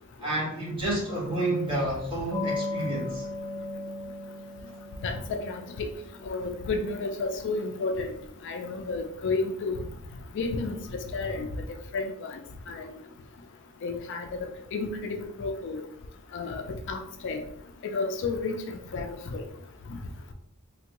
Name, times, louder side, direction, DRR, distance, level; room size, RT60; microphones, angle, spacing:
voice 1, 0.2-3.2, right 1 dB, 25° right, -5 dB, 1.2 m, -29 dB
sound 1, 2.3-8.5, left 2 dB, 20° left, 0.7 m, -38 dB
voice 2, 5.0-5.6 6.2-8.1 8.4-9.8 10.3-10.8 11.1-11.5 11.9-12.4 12.7-12.9 13.8-14.3 14.7-15.8 16.3-16.6 16.9-17.4 17.9-18.6 18.9-19.4, left 3 dB, 55° left, 5 dB, 0.4 m, -31 dB
3.4 x 2.2 x 2.9 m, 0.71 s
head